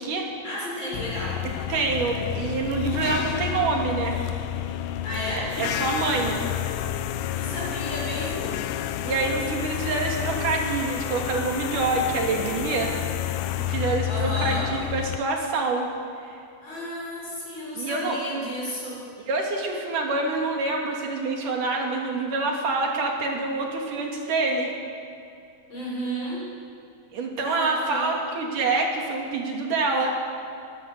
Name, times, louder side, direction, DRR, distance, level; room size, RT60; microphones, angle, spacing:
voice 1, 0.4-1.4 5.0-5.5 7.3-8.6 14.0-14.7 16.6-19.0 25.7-26.4 27.4-28.1, equal, 35° left, -6 dB, 7.5 m, -32 dB
sound 1, 0.9-15.2, left 12 dB, 85° left, 2.3 m, -30 dB
voice 2, 1.7-4.2 5.4-6.4 9.0-12.9 13.7-15.9 16.2-16.4 17.7-18.2 19.3-24.7 27.1-30.2, right 3 dB, 80° right, 1 dB, 4.1 m, -26 dB
23.0 x 16.0 x 8.2 m, 2.4 s
omnidirectional pair, 3.6 m